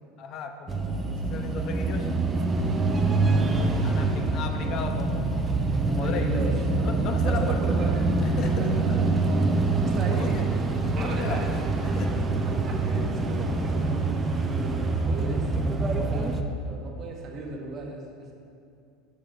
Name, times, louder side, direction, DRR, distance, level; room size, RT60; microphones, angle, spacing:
voice 1, 0.2-1.0 1.3-2.1 3.8-5.5 5.9-7.7 8.2-9.0 10.1-10.4 10.9-12.1, left 5 dB, 50° left, 5 dB, 0.6 m, -36 dB
sound 1, 0.7-16.4, right 3 dB, 20° right, 0.5 m, -25 dB
voice 2, 2.9-4.2 5.9-6.9 7.2-8.0 8.4-9.4 9.8-10.4 11.0-11.5 12.4-14.1 14.5-15.5 15.9-18.3, right 3 dB, 40° right, 0 dB, 1.1 m, -37 dB
6.3 x 6.1 x 3.3 m, 2.5 s
supercardioid pair, 100°, 0 cm